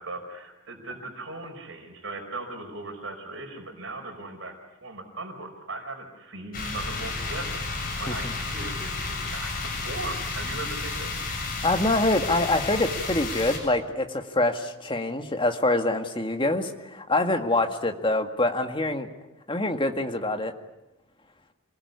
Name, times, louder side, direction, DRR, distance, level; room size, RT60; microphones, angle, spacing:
voice 1, 0.0-4.6 4.8-11.2, right 2 dB, 65° right, 4 dB, 5.2 m, -38 dB
sound 1, 6.5-13.6, left 3 dB, 40° left, 7.5 m, -32 dB
voice 2, 11.6-19.1 19.5-20.5, left 2 dB, 25° left, 6 dB, 2.0 m, -25 dB
27.5 x 21.0 x 9.7 m, 0.96 s
head